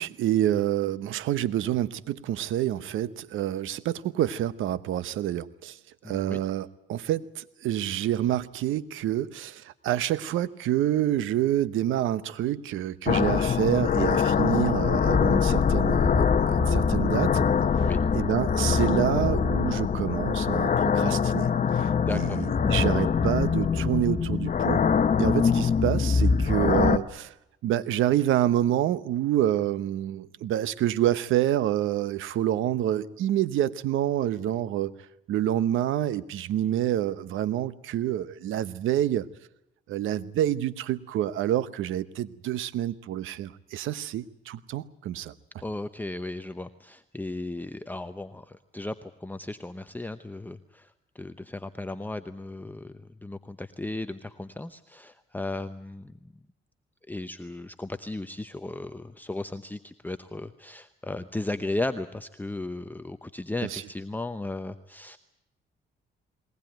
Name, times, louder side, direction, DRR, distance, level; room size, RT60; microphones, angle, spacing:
voice 1, 0.0-5.8 6.1-17.4 18.1-24.8 25.2-27.3 27.6-34.9 35.3-39.2 39.9-45.3 63.6-63.8, right 12 dB, 85° right, 16 dB, 1.0 m, -27 dB
voice 2, 6.0-6.4 17.8-18.0 22.0-22.5 45.6-56.1 57.1-65.2, left 2 dB, 10° left, 9 dB, 0.8 m, -35 dB
sound 1, 13.1-27.0, left 6 dB, 40° left, 1.2 m, -23 dB
21.5 x 19.0 x 9.1 m, 0.86 s
cardioid pair, 90°, 20 cm